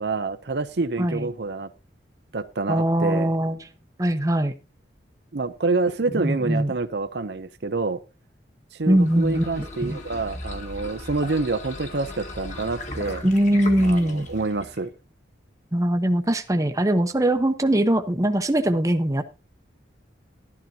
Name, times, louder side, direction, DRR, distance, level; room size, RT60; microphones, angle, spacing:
voice 1, 0.0-1.7 2.3-3.3 5.3-8.0 8.7-13.2 13.8-14.9, right 3 dB, 60° right, 0.7 m, -27 dB
voice 2, 1.0-1.3 2.7-3.6 4.0-4.5 6.1-6.7 8.9-10.0 13.2-14.3 15.7-19.2, right 1 dB, 20° right, 0.8 m, -22 dB
sound 1, 8.8-14.9, left 2 dB, 40° left, 2.0 m, -37 dB
12.5 x 12.0 x 2.8 m
head